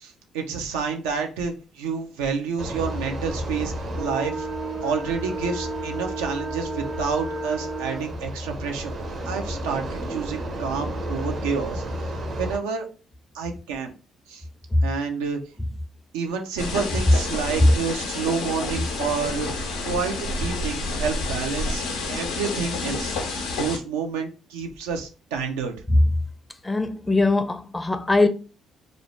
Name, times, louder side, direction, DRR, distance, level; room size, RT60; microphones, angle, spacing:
voice 1, 0.0-4.5 4.8-8.9 9.3-12.9 13.3-13.9 14.3-14.4 14.8-15.4 16.1-21.8 22.1-23.1 23.6-25.7, right 5 dB, 90° right, 0.4 m, -29 dB
sound 1, 2.6-12.6, right 1 dB, 55° right, 0.7 m, -31 dB
sound 2, 16.6-23.8, left 3 dB, 90° left, 0.6 m, -29 dB
voice 2, 26.6-28.3, left 2 dB, 15° left, 0.4 m, -20 dB
2.5 x 2.0 x 3.0 m
supercardioid pair, 60°, 0 cm